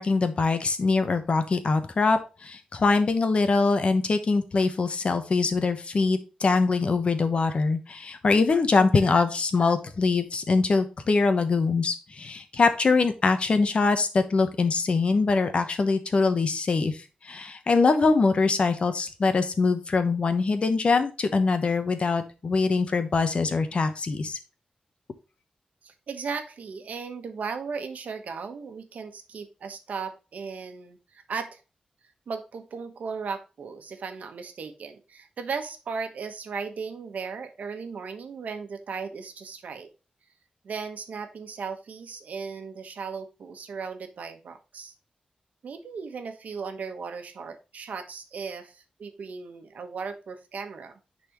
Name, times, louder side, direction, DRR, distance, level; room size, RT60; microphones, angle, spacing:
voice 1, 0.0-24.4, left 4 dB, 45° left, 9 dB, 1.1 m, -23 dB
voice 2, 25.8-31.6 32.3-39.9 40.6-44.9 45.6-51.0, right 5 dB, 85° right, 7 dB, 1.2 m, -36 dB
10.0 x 4.2 x 3.0 m, 0.32 s
wide cardioid pair, 135°, 3 cm